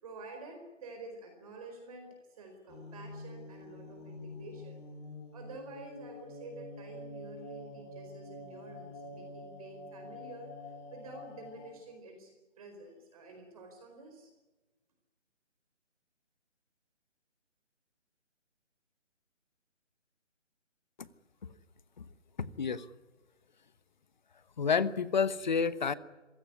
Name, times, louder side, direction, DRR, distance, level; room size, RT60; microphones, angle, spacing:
voice 1, 0.0-4.8 5.3-14.3, right 2 dB, 30° right, 4 dB, 4.5 m, -49 dB
sound 1, 2.7-11.7, left 2 dB, 20° left, 4.0 m, -47 dB
voice 2, 22.4-22.9 24.6-25.9, left 6 dB, 35° left, 16 dB, 1.1 m, -29 dB
26.0 x 16.5 x 9.8 m, 1.2 s
hypercardioid pair, 165°, 37 cm